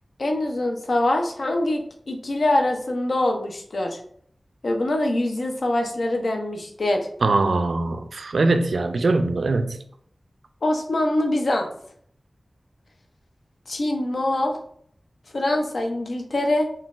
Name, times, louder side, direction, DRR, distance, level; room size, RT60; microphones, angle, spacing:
voice 1, 0.2-4.0 4.6-7.1 10.6-11.7 13.7-14.6 15.3-16.7, left 1 dB, 75° left, 3 dB, 0.5 m, -24 dB
voice 2, 7.2-9.8, right 3 dB, 85° right, 8 dB, 0.3 m, -22 dB
3.8 x 2.2 x 2.4 m, 0.63 s
wide cardioid pair, 75°, 0 cm